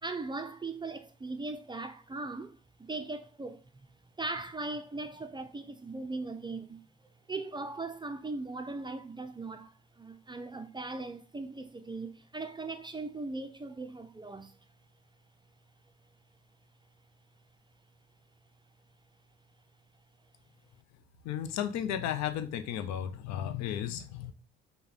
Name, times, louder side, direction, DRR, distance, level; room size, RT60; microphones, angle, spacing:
voice 1, 0.0-3.9 4.2-6.8 7.3-14.6, right 3 dB, 15° right, 0.5 m, -39 dB
voice 2, 21.2-24.3, left 10 dB, 55° left, 0.6 m, -34 dB
5.4 x 2.3 x 4.0 m
figure-of-eight pair, 50°, 33 cm